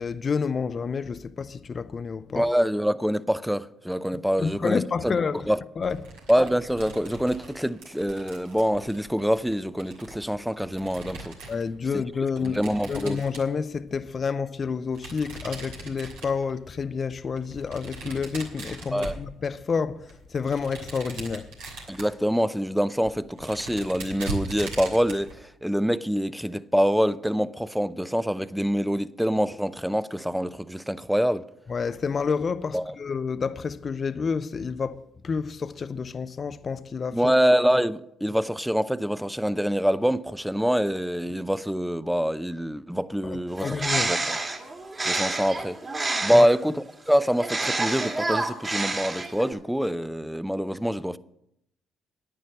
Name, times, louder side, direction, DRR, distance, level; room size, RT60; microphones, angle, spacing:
voice 1, 0.0-2.5 4.4-5.5 5.8-6.0 11.5-12.6 12.9-21.5 31.7-37.3 43.2-44.1 46.3-46.5, left 5 dB, 45° left, 0.5 m, -29 dB
voice 2, 2.3-5.2 5.5-5.6 6.3-11.3 11.9-12.0 12.4-13.2 18.9-19.2 21.9-25.3 25.6-31.4 32.7-32.9 37.1-44.4 45.1-45.8 46.2-51.2, equal, ahead, 0.6 m, -25 dB
sound 1, 5.8-11.7 12.4-13.9 14.9-16.6 17.4-19.7 20.1-22.2 22.7-22.8 23.0-25.3, right 2 dB, 80° right, 3.1 m, -40 dB
Bird, 43.5-46.6 47.4-49.5, right 2 dB, 35° right, 2.4 m, -28 dB
10.0 x 9.4 x 6.5 m
hypercardioid pair, 55°, 0 cm